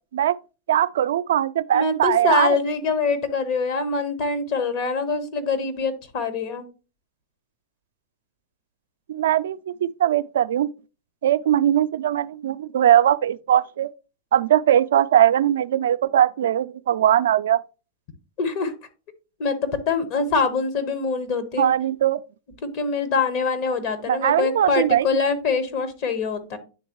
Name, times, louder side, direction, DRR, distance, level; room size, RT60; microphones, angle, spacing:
voice 1, 0.7-2.6 9.1-10.7 11.2-13.9 14.3-17.6 21.6-22.2 24.1-25.1, right 11 dB, 75° right, 0.4 m, -20 dB
voice 2, 1.7-6.6 18.4-18.7 19.4-21.7 22.6-26.6, left 4 dB, 50° left, 1.3 m, -24 dB
9.7 x 3.6 x 3.0 m
hypercardioid pair, 120°, 0 cm